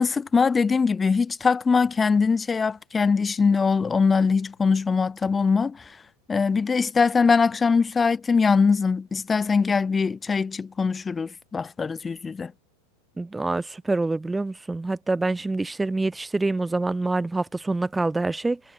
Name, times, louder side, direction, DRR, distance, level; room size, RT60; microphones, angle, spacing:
voice 1, 0.0-5.8 6.3-12.5, left 5 dB, 15° left, 1.5 m, -22 dB
voice 2, 13.2-18.6, right 2 dB, 10° right, 1.2 m, -26 dB
figure-of-eight pair, 90°, 0 cm